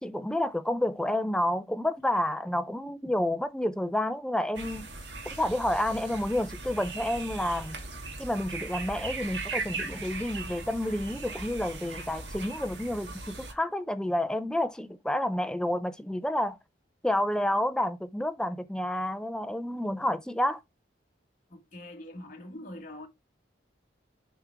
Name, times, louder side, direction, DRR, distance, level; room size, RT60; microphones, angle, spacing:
voice 1, 0.0-4.9 5.4-7.8 8.2-16.6 17.0-20.6, left 1 dB, 5° left, 0.4 m, -29 dB
sound 1, 4.5-13.5, right 3 dB, 75° right, 1.4 m, -39 dB
voice 2, 21.5-23.1, left 1 dB, 45° left, 1.8 m, -43 dB
7.1 x 3.5 x 4.6 m
head